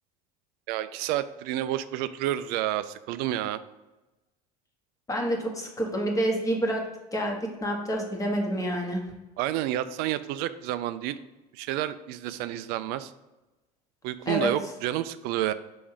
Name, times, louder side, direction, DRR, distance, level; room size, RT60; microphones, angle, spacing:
voice 1, 0.7-3.6 9.4-11.2 11.5-13.1 14.0-15.5, right 13 dB, 55° right, 13 dB, 0.4 m, -30 dB
voice 2, 5.1-6.8 7.1-9.0 14.2-14.5, equal, 15° left, 1 dB, 1.5 m, -28 dB
6.1 x 3.5 x 4.9 m, 1.0 s
hypercardioid pair, 75°, 20 cm